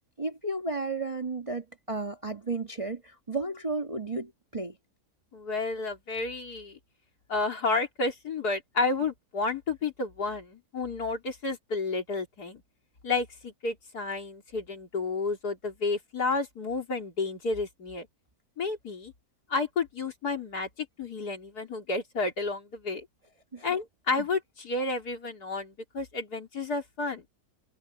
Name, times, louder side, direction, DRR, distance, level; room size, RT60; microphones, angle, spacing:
voice 1, 0.2-4.8 23.5-23.7 24.2-24.3, right 3 dB, 20° right, 1.4 m, -33 dB
voice 2, 5.3-6.8 7.3-12.6 13.0-18.1 18.6-19.1 19.5-23.1 23.6-27.2, left 3 dB, 65° left, 3.9 m, -31 dB
omnidirectional pair, 1.8 m